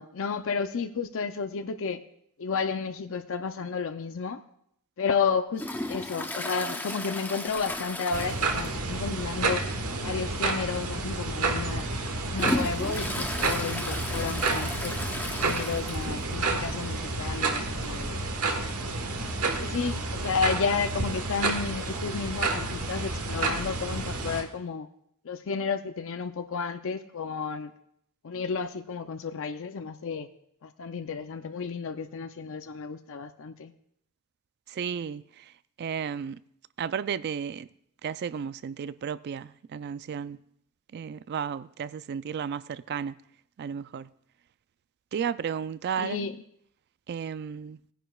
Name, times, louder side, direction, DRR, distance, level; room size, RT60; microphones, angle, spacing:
voice 1, 0.0-2.0 2.4-4.4 5.0-5.6 5.9-9.6 10.0-11.9 12.3-15.0 15.4-18.3 19.6-24.9 25.2-27.7 28.2-30.3 30.6-33.7 46.0-46.4, left 5 dB, 60° left, 0.5 m, -32 dB
Toilet flush, 5.5-9.0 9.3-9.4 9.8-9.9 10.7-10.9 11.4-16.3 16.6-16.7 16.9-17.0 18.1-18.2, left 1 dB, 10° left, 0.7 m, -35 dB
sound 1, 8.1-24.4, right 3 dB, 80° right, 1.3 m, -30 dB
voice 2, 34.7-35.5 35.8-36.4 36.8-37.7 38.0-40.4 40.9-43.1 43.6-44.1 45.1-46.3 47.1-47.8, right 7 dB, 50° right, 0.3 m, -33 dB
18.5 x 10.0 x 2.3 m
head